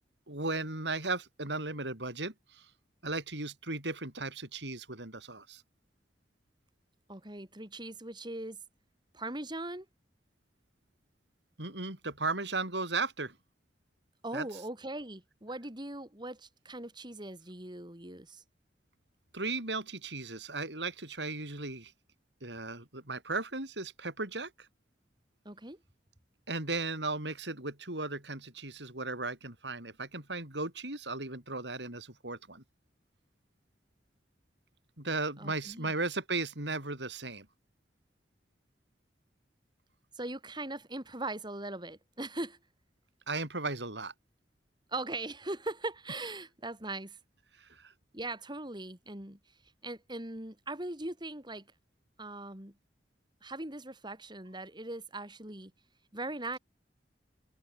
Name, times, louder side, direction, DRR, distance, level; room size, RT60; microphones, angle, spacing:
voice 1, 0.3-2.7 3.0-5.6 11.6-13.3 14.3-14.5 19.3-21.9 22.4-24.7 26.5-32.6 35.0-37.5 43.3-44.1 47.6-47.9, right 3 dB, 80° right, 7.8 m, -36 dB
voice 2, 7.1-8.6 9.1-9.9 14.2-18.4 25.5-25.8 35.4-35.9 40.1-42.6 44.9-47.2 48.1-49.4 49.8-51.7 52.2-52.7 53.4-55.7 56.1-56.6, right 2 dB, 25° right, 5.3 m, -40 dB
head